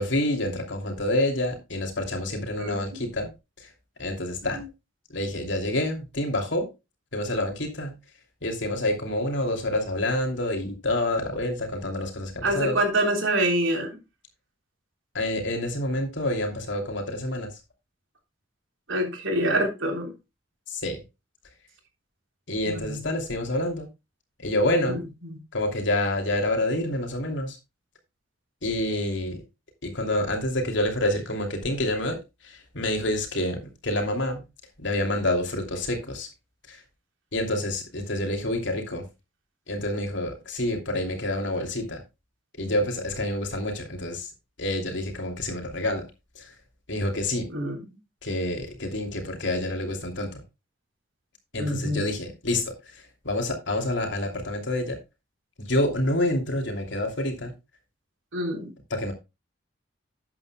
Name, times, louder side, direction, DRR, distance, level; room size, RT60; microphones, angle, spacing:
voice 1, 0.0-3.3 3.6-3.7 4.0-4.6 5.1-6.7 7.1-7.9 8.4-12.8 15.1-17.5 20.7-21.0 22.5-23.9 24.4-25.0 25.5-27.6 28.6-29.4 29.8-32.2 32.4-34.4 34.8-36.3 36.7-36.8 37.3-39.1 39.7-42.0 42.6-44.3 44.6-46.1 46.3-46.5 46.9-47.5 48.2-50.4 51.5-55.0 55.6-57.5 58.9-59.1, left 1 dB, 70° left, 2.8 m, -28 dB
voice 2, 2.6-3.0 4.5-4.6 12.4-14.0 18.9-20.1 22.7-23.0 24.8-25.4 47.5-47.8 51.6-52.1 58.3-58.7, right 1 dB, 90° right, 3.6 m, -26 dB
12.5 x 8.9 x 2.2 m
head